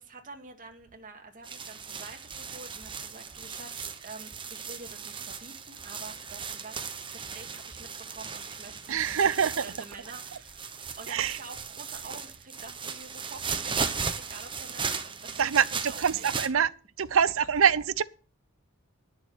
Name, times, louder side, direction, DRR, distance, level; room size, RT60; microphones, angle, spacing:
voice 1, 0.0-6.8 7.1-16.5, right 3 dB, 40° right, 2.0 m, -47 dB
sound 1, 1.4-16.5, right 5 dB, 25° right, 1.0 m, -37 dB
voice 2, 8.9-9.6 11.1-11.4 15.4-16.7 17.0-18.0, right 7 dB, 70° right, 0.6 m, -25 dB
11.0 x 7.0 x 7.8 m
head